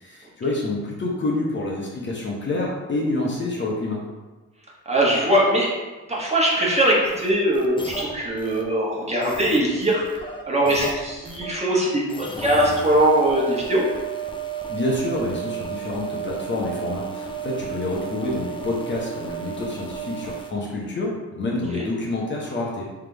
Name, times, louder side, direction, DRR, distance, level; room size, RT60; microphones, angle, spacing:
voice 1, 0.0-4.0 14.7-22.9, left 2 dB, 40° left, -3 dB, 1.0 m, -27 dB
voice 2, 4.9-5.7 6.1-10.1 10.4-13.8 21.7-21.9, right 1 dB, 20° right, -4 dB, 1.3 m, -21 dB
sound 1, 7.0-8.6 9.2-11.5 12.1-20.5, right 6 dB, 15° left, 0.5 m, -33 dB
3.6 x 3.5 x 3.4 m, 1.2 s
cardioid pair, 90°, 30 cm